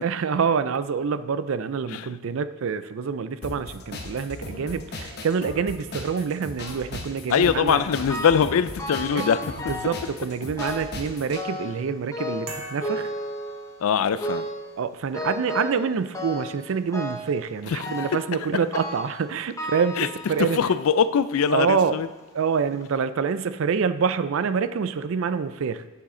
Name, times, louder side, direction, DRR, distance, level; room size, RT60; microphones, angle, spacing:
voice 1, 0.0-7.8 9.1-9.3 9.7-13.1 14.8-20.6 21.5-21.9 22.3-25.8, right 6 dB, 65° right, 0.4 m, -26 dB
sound 1, 3.4-11.4, left 2 dB, 50° left, 0.9 m, -38 dB
voice 2, 7.3-9.4 13.8-14.5 17.7-17.9 20.0-20.1 20.5-22.1, left 7 dB, 75° left, 0.4 m, -22 dB
sound 2, 8.1-8.5 8.8-10.1 10.6-11.0 11.3-11.8 12.1-13.8 14.2-14.7 15.1-15.8 16.1-16.6 16.9-17.3 17.8-18.3 18.7-19.2 19.6-20.6 21.3-21.4 22.2-22.3 22.7-22.8, left 1 dB, 15° left, 0.8 m, -33 dB
sound 3, 12.5-14.4, right 2 dB, 80° right, 1.3 m, -41 dB
8.6 x 7.3 x 3.8 m
head